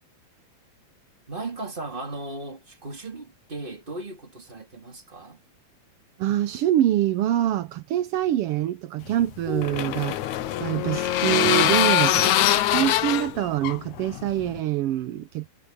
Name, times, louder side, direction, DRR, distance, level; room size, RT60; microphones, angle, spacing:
voice 1, 1.3-5.4 9.5-10.1 10.4-10.5 12.2-13.0, right 2 dB, 15° right, 2.8 m, -37 dB
voice 2, 6.2-10.2 10.6-12.3 12.7-15.5, right 12 dB, 85° right, 1.3 m, -25 dB
sound 1, 9.1-14.6, left 12 dB, 75° left, 2.2 m, -23 dB
omnidirectional pair, 3.6 m